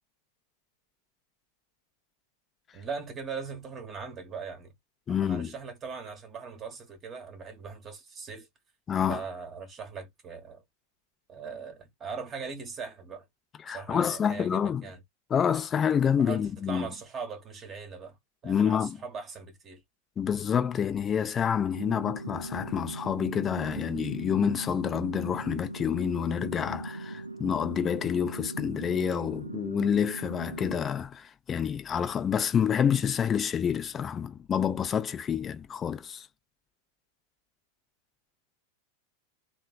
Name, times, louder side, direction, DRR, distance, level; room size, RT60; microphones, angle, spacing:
voice 1, 2.7-4.7 5.2-8.5 9.1-10.6 11.3-13.2 13.7-15.0 16.2-18.2 18.4-19.8, right 5 dB, 25° right, 1.0 m, -40 dB
voice 2, 5.1-5.5 8.9-9.2 13.6-14.9 15.3-16.9 18.4-19.0 20.2-36.3, left 8 dB, 25° left, 0.6 m, -28 dB
sound 1, 21.7-30.8, right 2 dB, 90° right, 0.3 m, -39 dB
3.1 x 2.2 x 2.2 m
figure-of-eight pair, 90°, 0 cm